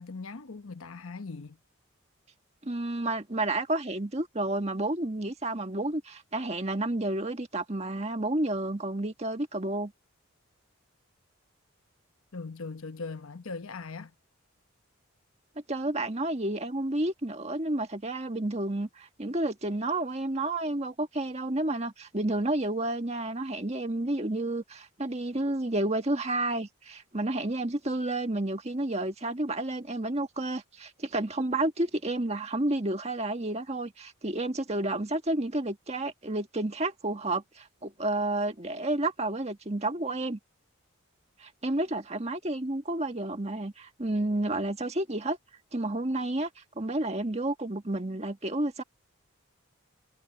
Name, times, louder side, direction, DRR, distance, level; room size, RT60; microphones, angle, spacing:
voice 1, 0.0-1.6 12.3-14.1, left 4 dB, 75° left, 1.0 m, -40 dB
voice 2, 2.6-9.9 15.7-40.4 41.4-45.4 45.7-48.8, right 2 dB, 30° right, 1.7 m, -30 dB
head